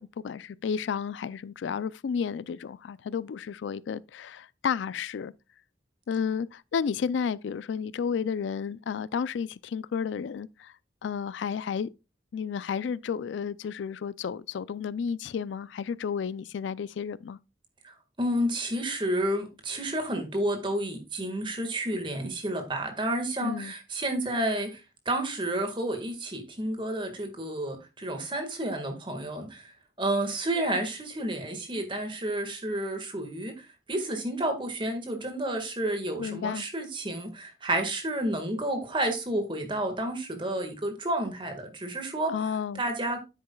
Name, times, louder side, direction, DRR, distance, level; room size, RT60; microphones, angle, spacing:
voice 1, 0.0-5.3 6.1-10.7 11.0-11.9 12.3-17.4 23.4-23.7 36.2-36.7 42.2-42.8, left 6 dB, 85° left, 0.3 m, -32 dB
voice 2, 17.8-29.7 30.0-42.3 42.8-43.2, right 1 dB, 25° right, 1.7 m, -30 dB
9.5 x 8.4 x 2.3 m
head